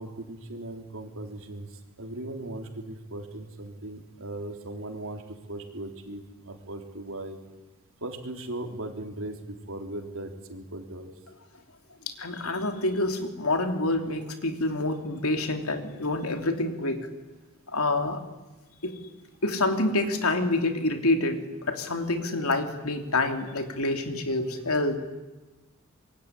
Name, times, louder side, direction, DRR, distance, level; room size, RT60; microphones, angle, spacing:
voice 1, 0.0-1.7 2.0-7.4 8.0-11.1, right 1 dB, 65° right, 4 dB, 3.9 m, -38 dB
voice 2, 12.1-17.1 17.7-18.2 18.8-19.0 19.4-25.0, left 2 dB, 75° left, 6 dB, 3.2 m, -27 dB
25.5 x 22.5 x 10.0 m, 1.2 s
head